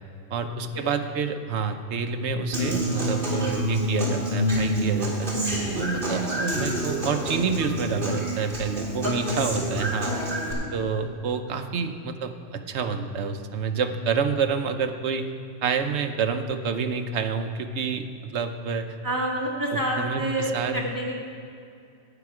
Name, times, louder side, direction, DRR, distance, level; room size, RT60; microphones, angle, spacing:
voice 1, 0.3-5.3 5.7-10.2 10.7-15.3 15.6-18.9 20.0-20.8, right 5 dB, 65° right, 7 dB, 1.0 m, -28 dB
Human voice / Acoustic guitar, 2.5-10.5, equal, 40° right, 2.8 m, -27 dB
voice 2, 9.0-9.4 10.5-10.8 19.0-21.1, right 1 dB, 15° right, -3 dB, 1.8 m, -28 dB
12.0 x 9.1 x 4.8 m, 2.5 s
omnidirectional pair, 1.3 m